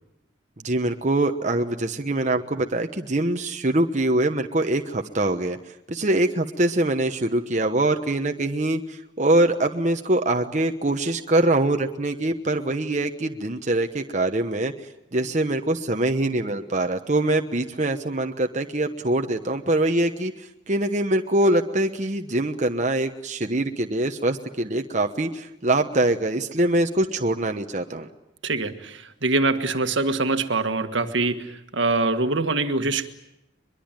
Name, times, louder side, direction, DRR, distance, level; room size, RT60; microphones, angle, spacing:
voice 1, 0.6-5.6 5.9-14.7 15.1-28.1, right 1 dB, 40° right, 1.1 m, -23 dB
voice 2, 28.4-33.1, right 3 dB, 75° right, 1.7 m, -24 dB
23.5 x 22.5 x 9.0 m
head